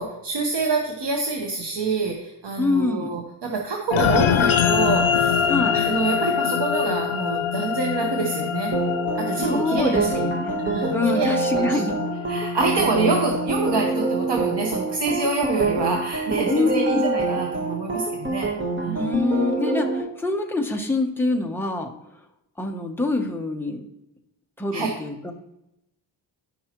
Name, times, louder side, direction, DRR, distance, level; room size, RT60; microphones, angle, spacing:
voice 1, 0.0-8.7 9.2-10.2 10.6-11.9 12.3-18.5 18.8-19.1 24.7-24.9, right 3 dB, 60° right, 0 dB, 1.2 m, -26 dB
voice 2, 2.6-3.1 5.5-5.8 9.4-10.6 10.9-12.0 16.5-17.3 18.9-21.9 22.6-23.9 24.6-25.3, left 3 dB, 5° left, 1 dB, 0.9 m, -25 dB
sound 1, 3.9-14.5, left 8 dB, 85° left, 0.7 m, -25 dB
sound 2, 8.7-20.0, right 3 dB, 25° right, 1.2 m, -26 dB
14.5 x 5.5 x 3.0 m, 0.86 s
wide cardioid pair, 165°, 46 cm